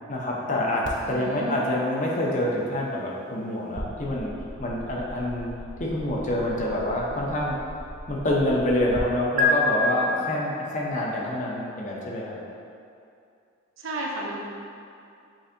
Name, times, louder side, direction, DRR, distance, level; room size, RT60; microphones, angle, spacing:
voice 1, 0.1-4.3 4.6-5.5 5.8-7.6 8.1-12.4, left 1 dB, 35° left, -3 dB, 0.6 m, -26 dB
sound 1, 0.8-9.0 9.4-9.5, left 2 dB, 40° right, 0.4 m, -34 dB
voice 2, 1.0-1.6 13.8-14.4, right 1 dB, 75° right, -2 dB, 0.7 m, -32 dB
7.3 x 2.6 x 2.6 m, 2.5 s
head